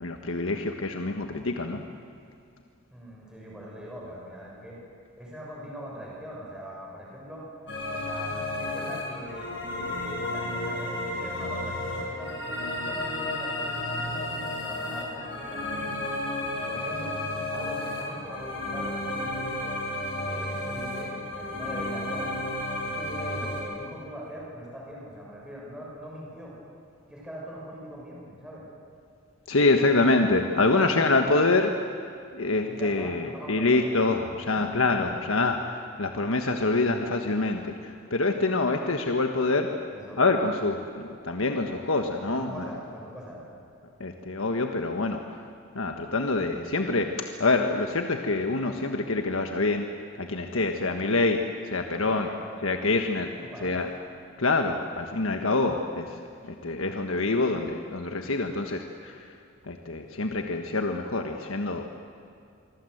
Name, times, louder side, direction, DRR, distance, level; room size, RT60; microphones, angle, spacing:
voice 1, 0.0-1.8 29.5-31.7 32.3-39.8 40.2-42.7 44.0-45.5 45.7-49.9 50.2-52.3 52.6-53.3 53.6-53.9 54.4-59.3 59.6-61.9, left 3 dB, 85° left, 4 dB, 1.5 m, -26 dB
voice 2, 2.9-4.8 5.2-7.5 7.9-16.0 16.5-17.2 17.5-19.8 20.1-22.4 22.8-26.5 27.1-28.7 32.7-34.0 34.5-34.6 39.9-40.2 42.2-43.4 52.2-52.6 53.4-53.8, equal, 5° right, -5 dB, 6.4 m, -42 dB
sound 1, 7.7-23.6, left 1 dB, 55° left, 7.0 m, -32 dB
26.5 x 24.0 x 8.1 m, 2.5 s
head